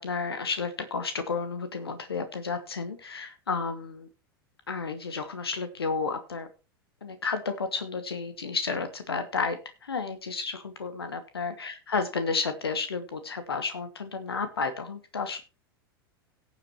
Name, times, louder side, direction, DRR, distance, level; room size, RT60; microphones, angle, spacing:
voice 1, 0.0-4.1 4.7-6.5 7.0-15.4, left 4 dB, 85° left, 10 dB, 1.1 m, -32 dB
18.0 x 7.3 x 2.9 m, 0.32 s
figure-of-eight pair, 90°, 13 cm